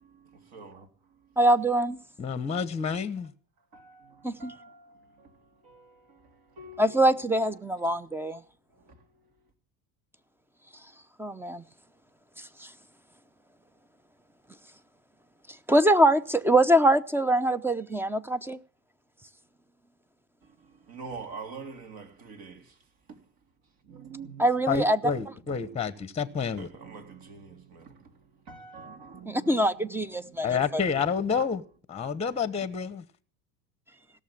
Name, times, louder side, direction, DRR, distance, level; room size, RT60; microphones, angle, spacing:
voice 1, 0.0-1.4 1.9-2.0 3.7-8.0 8.3-8.4 8.7-9.5 20.4-23.3 23.6-25.0 25.3-25.9 26.2-30.6, right 4 dB, 50° right, 3.4 m, -47 dB
voice 2, 1.4-2.0 4.2-4.5 6.8-8.4 11.2-11.6 12.4-12.5 15.7-18.6 24.4-25.0 29.3-30.6, right 1 dB, 5° right, 0.7 m, -23 dB
voice 3, 2.2-3.3 24.7-26.7 30.4-31.6 31.9-33.1, left 6 dB, 15° left, 1.0 m, -29 dB
17.0 x 6.8 x 8.8 m
supercardioid pair, 105°, 45 cm